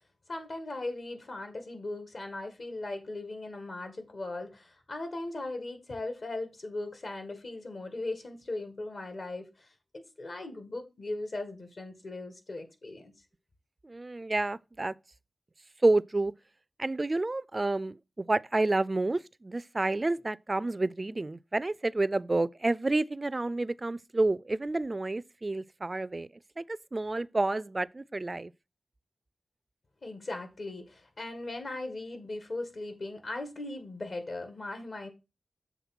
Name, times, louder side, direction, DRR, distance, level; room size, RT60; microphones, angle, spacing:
voice 1, 0.3-9.7 10.2-13.1 30.0-35.1, left 2 dB, 65° left, 1.9 m, -38 dB
voice 2, 13.8-14.9 15.8-16.3 16.8-26.3 26.6-28.5, right 2 dB, 35° right, 0.3 m, -29 dB
7.2 x 3.5 x 5.9 m
wide cardioid pair, 60°, 0 cm